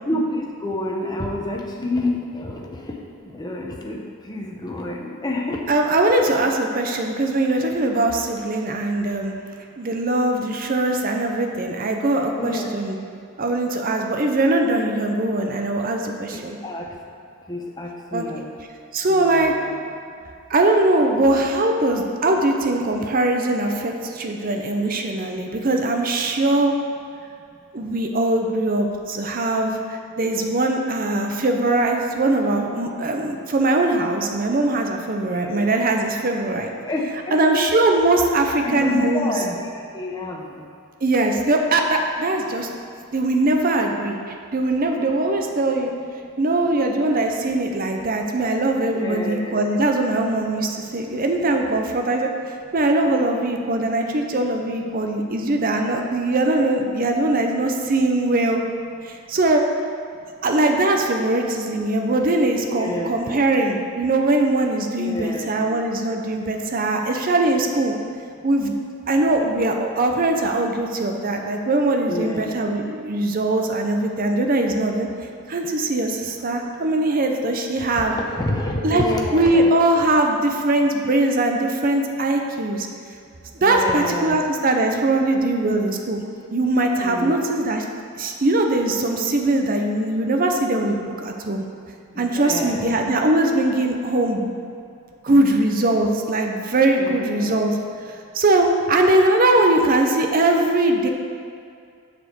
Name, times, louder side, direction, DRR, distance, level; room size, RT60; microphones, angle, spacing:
voice 1, 0.0-2.9 3.2-5.6 12.4-12.7 16.3-16.9 17.5-18.5 19.1-19.8 35.3-35.8 36.8-37.7 38.6-40.6 48.9-49.7 62.7-63.4 65.0-65.7 72.1-72.6 77.9-79.7 83.6-84.4 87.0-87.5 92.1-92.9 97.0-97.6, left 1 dB, 20° left, 0 dB, 0.8 m, -28 dB
voice 2, 5.7-9.3 9.8-13.0 13.4-16.6 18.1-18.2 18.9-19.5 20.5-26.7 27.7-36.7 37.3-39.3 41.0-42.7 43.1-44.2 44.5-45.9 46.4-52.3 52.7-58.6 59.1-59.6 60.4-67.9 68.4-68.7 69.1-75.1 75.5-78.1 78.8-79.0 79.3-82.9 83.6-86.2 86.5-87.8 88.2-91.6 92.2-94.5 95.2-97.8 98.3-101.1, right 2 dB, 40° right, 3 dB, 0.6 m, -21 dB
7.4 x 4.3 x 6.8 m, 2.4 s
head